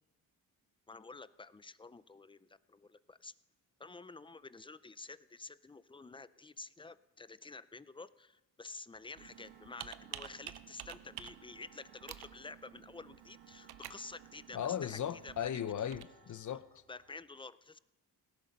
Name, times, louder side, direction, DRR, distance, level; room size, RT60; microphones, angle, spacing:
voice 1, 0.9-3.3 3.8-15.5 16.9-17.8, left 3 dB, 15° left, 0.5 m, -50 dB
sound 1, 8.9-17.1, right 5 dB, 60° right, 1.7 m, -67 dB
Computer keyboard, 9.2-16.0, right 12 dB, 85° right, 0.7 m, -51 dB
voice 2, 14.5-16.7, left 9 dB, 50° left, 0.7 m, -37 dB
17.5 x 11.0 x 5.2 m
cardioid pair, 85°, 37 cm